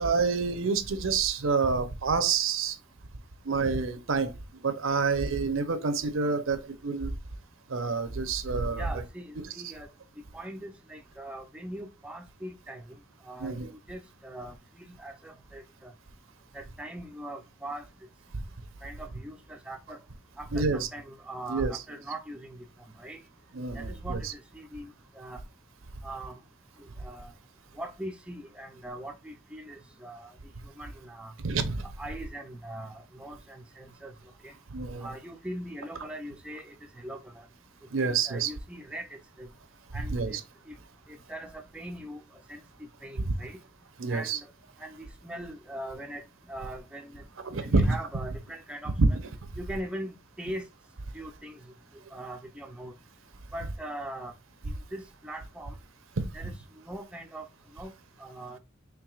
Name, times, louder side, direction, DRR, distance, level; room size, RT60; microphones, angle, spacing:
voice 1, 0.0-2.8 3.4-4.3 4.6-7.1 7.7-8.9 13.4-13.7 18.3-18.4 20.5-20.9 21.5-21.7 23.5-24.3 31.4-31.9 34.7-35.1 37.9-38.5 40.1-40.3 43.2-43.3 44.0-44.4 47.4-48.0 49.0-49.2 56.2-56.3, right 4 dB, 70° right, 0.7 m, -27 dB
voice 2, 8.7-9.9 10.3-13.0 13.2-15.9 16.5-17.9 18.8-20.0 20.4-22.6 23.0-23.2 23.7-25.4 26.0-26.4 26.8-27.3 27.7-30.3 30.6-31.3 31.8-34.1 34.4-34.5 35.0-37.5 38.0-39.5 39.9-40.8 41.1-42.2 42.5-43.6 44.1-44.5 44.8-47.2 47.6-49.0 49.6-50.7 51.1-51.7 52.1-52.9 53.5-54.3 54.7-55.8 56.3-57.5 57.7-57.9 58.2-58.6, right 1 dB, 5° right, 0.4 m, -41 dB
4.7 x 3.3 x 2.3 m
head